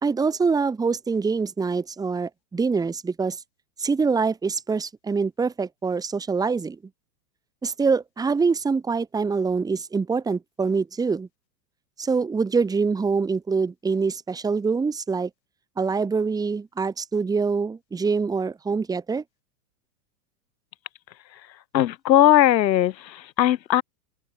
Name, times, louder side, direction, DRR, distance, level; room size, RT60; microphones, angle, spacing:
voice 1, 0.0-3.4 3.8-6.8 7.6-11.3 12.0-15.3 15.8-19.2, right 4 dB, 5° right, 2.6 m, -25 dB
voice 2, 21.7-23.8, left 12 dB, 90° left, 2.1 m, -19 dB
open air
supercardioid pair, 165°, 50 cm